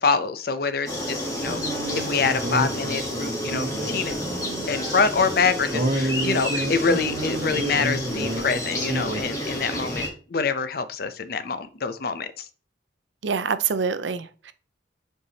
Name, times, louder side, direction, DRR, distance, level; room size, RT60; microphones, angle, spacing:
voice 1, 0.0-1.6 2.0-4.2 4.7-10.0 10.3-12.4, left 5 dB, 50° left, 0.5 m, -25 dB
sound 1, 0.9-10.1, equal, 20° left, 1.2 m, -30 dB
sound 2, 1.4-4.8 5.0-5.1 5.7-8.5 8.8-9.2, right 1 dB, 50° right, 1.2 m, -30 dB
voice 2, 13.2-14.5, right 6 dB, 75° right, 0.5 m, -26 dB
7.7 x 4.6 x 2.8 m
head